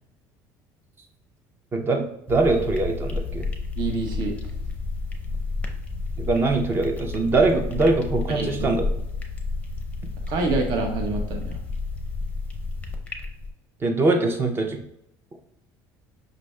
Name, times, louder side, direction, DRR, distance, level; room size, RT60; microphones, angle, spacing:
voice 1, 1.7-3.5 6.2-8.8 13.8-14.8, right 3 dB, 30° right, 4 dB, 0.6 m, -22 dB
sound 1, 2.3-13.5, left 3 dB, 15° left, 0.6 m, -31 dB
voice 2, 3.8-4.4 8.3-8.7 10.3-11.6, right 3 dB, 60° right, 3 dB, 0.9 m, -27 dB
5.4 x 2.5 x 3.2 m, 0.77 s
cardioid pair, 130°, 8 cm